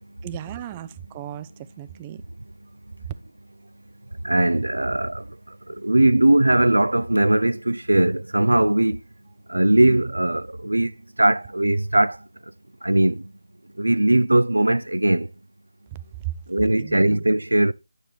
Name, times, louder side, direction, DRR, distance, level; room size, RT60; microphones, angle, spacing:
voice 1, 0.2-1.5 1.8-2.2 15.9-16.3 16.8-17.2, right 14 dB, 20° right, 0.4 m, -35 dB
voice 2, 4.2-5.1 5.8-9.0 9.5-10.9 11.2-12.2 12.8-13.2 13.8-15.3 16.5-17.7, right 1 dB, 85° right, 0.4 m, -19 dB
9.2 x 6.0 x 3.3 m
figure-of-eight pair, 160°, 0 cm